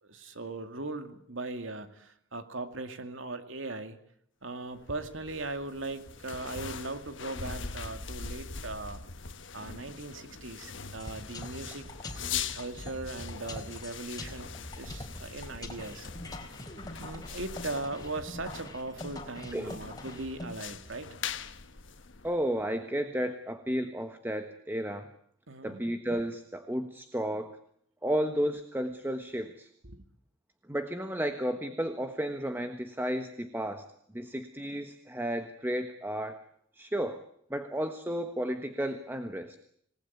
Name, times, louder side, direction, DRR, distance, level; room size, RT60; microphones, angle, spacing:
voice 1, 0.0-4.0 4.4-9.0 9.5-11.9 12.2-16.1 17.0-21.1 25.5-25.8 29.8-30.0, right 2 dB, 70° right, 9 dB, 2.4 m, -39 dB
sound 1, 4.8-22.6, left 6 dB, 65° left, 1.4 m, -42 dB
sound 2, 11.0-20.6, left 1 dB, 20° left, 3.7 m, -44 dB
voice 2, 22.2-25.1 25.6-27.6 28.0-29.7 30.7-33.9 34.1-36.4 36.7-37.2 37.5-39.6, equal, 10° right, 8 dB, 1.4 m, -33 dB
27.0 x 19.0 x 9.4 m, 0.68 s
head